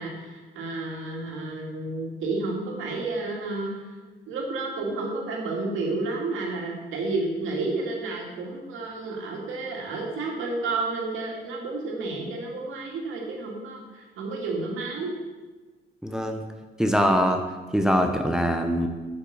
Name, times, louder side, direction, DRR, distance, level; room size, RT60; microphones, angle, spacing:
voice 1, 0.0-3.7 4.3-15.1, right 3 dB, 85° right, -1 dB, 2.3 m, -31 dB
voice 2, 16.0-16.4 16.8-17.4 17.7-18.9, equal, 5° right, 4 dB, 0.8 m, -22 dB
8.0 x 5.8 x 6.5 m, 1.3 s
cardioid pair, 90°, 20 cm